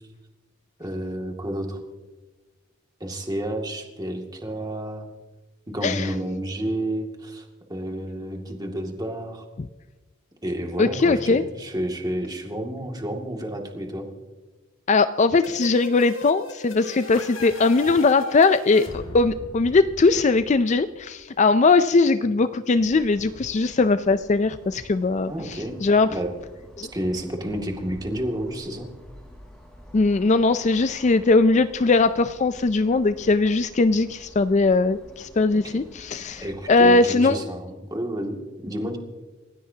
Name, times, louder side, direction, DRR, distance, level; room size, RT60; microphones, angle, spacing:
voice 1, 0.8-1.8 3.0-5.1 5.7-9.5 10.4-14.1 22.2-22.3 25.3-26.3 26.9-28.9 35.5-35.9 36.4-39.0, right 1 dB, 20° right, 2 dB, 2.3 m, -30 dB
voice 2, 10.8-11.4 14.9-26.1 26.8-26.9 29.9-37.4, left 3 dB, 35° left, 12 dB, 0.4 m, -20 dB
sound 1, 15.4-21.1, left 1 dB, 65° left, 2.0 m, -38 dB
sound 2, 22.7-36.9, equal, 5° left, 4.1 m, -48 dB
29.5 x 16.0 x 2.8 m, 1.2 s
head